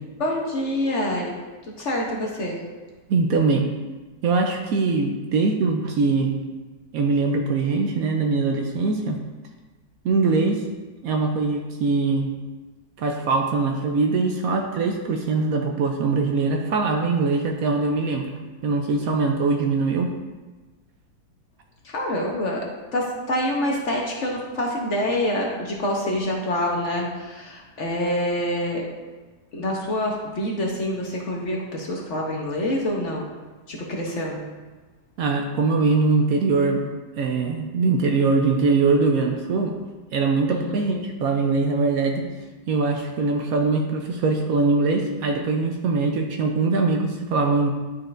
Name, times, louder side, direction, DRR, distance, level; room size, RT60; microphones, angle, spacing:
voice 1, 0.2-1.3 1.8-2.6 21.8-22.6 22.9-28.8 29.5-33.3 33.7-34.5 40.5-41.0, left 1 dB, 55° left, -2 dB, 1.0 m, -26 dB
voice 2, 3.1-3.7 4.2-6.3 6.9-9.2 10.0-10.6 11.0-12.3 13.0-18.3 18.6-20.1 35.2-36.8 37.2-39.8 40.1-42.2 42.7-47.7, right 3 dB, 70° right, 3 dB, 0.9 m, -22 dB
10.5 x 4.3 x 2.5 m, 1.2 s
omnidirectional pair, 1.8 m